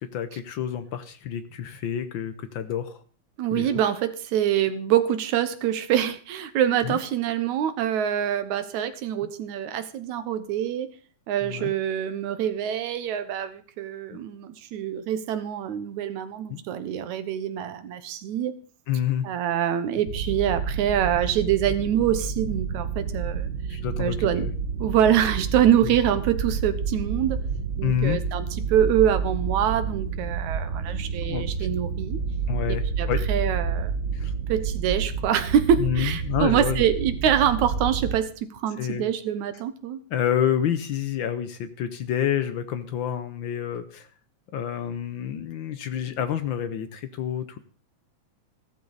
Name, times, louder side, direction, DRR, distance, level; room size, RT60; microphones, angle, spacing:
voice 1, 0.1-3.0 3.5-3.8 6.8-7.0 11.4-11.7 14.1-14.2 16.5-16.6 18.9-19.3 23.7-24.5 25.8-26.0 27.8-28.2 31.3-31.7 32.5-33.2 34.1-34.3 35.8-36.9 38.8-39.0 40.1-44.1 44.5-47.6, left 9 dB, 80° left, 11 dB, 1.1 m, -28 dB
voice 2, 3.4-10.9 11.3-18.6 19.2-23.5 24.0-24.5 24.8-27.4 27.8-32.2 33.0-33.9 34.5-40.0, right 10 dB, 80° right, 11 dB, 2.5 m, -25 dB
sound 1, 20.1-38.2, right 5 dB, 60° right, 0.8 m, -29 dB
15.0 x 13.5 x 4.0 m, 0.42 s
omnidirectional pair, 3.3 m